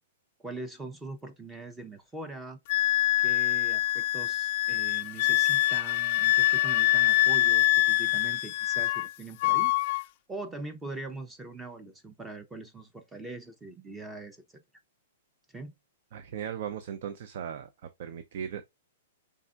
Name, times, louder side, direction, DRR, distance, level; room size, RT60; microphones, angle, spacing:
voice 1, 0.4-2.6 3.2-14.6 15.5-15.7, right 2 dB, 10° right, 0.6 m, -42 dB
Wind instrument woodwind instrument, 2.7-9.1 9.4-10.0, left 16 dB, 45° left, 0.3 m, -25 dB
voice 2, 16.1-18.6, right 8 dB, 55° right, 0.6 m, -37 dB
5.4 x 3.6 x 2.4 m
hypercardioid pair, 150°, 0 cm